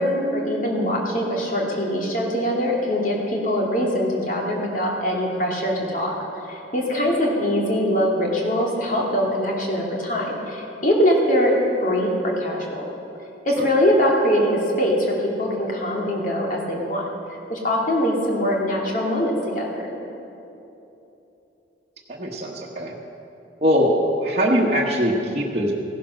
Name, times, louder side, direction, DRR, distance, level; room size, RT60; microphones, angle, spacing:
voice 1, 0.0-6.2 6.5-11.5 11.8-12.8 13.4-15.1 15.4-17.0 17.5-19.9, equal, 45° left, -2 dB, 2.5 m, -22 dB
voice 2, 22.1-22.9 23.6-25.7, equal, 35° right, -5 dB, 1.2 m, -22 dB
16.0 x 11.0 x 6.3 m, 2.9 s
head